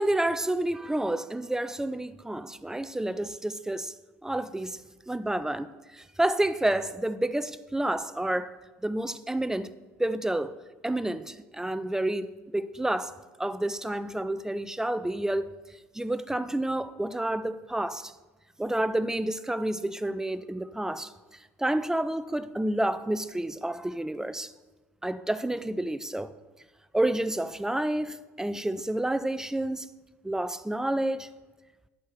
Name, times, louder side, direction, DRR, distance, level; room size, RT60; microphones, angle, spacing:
voice 1, 0.0-3.9 4.2-4.8 5.1-8.5 8.8-9.7 10.0-10.6 10.8-18.1 18.6-24.5 25.0-26.3 26.9-29.9 30.2-31.3, right 1 dB, 5° right, 0.4 m, -29 dB
10.5 x 4.6 x 4.5 m
hypercardioid pair, 70°, 8 cm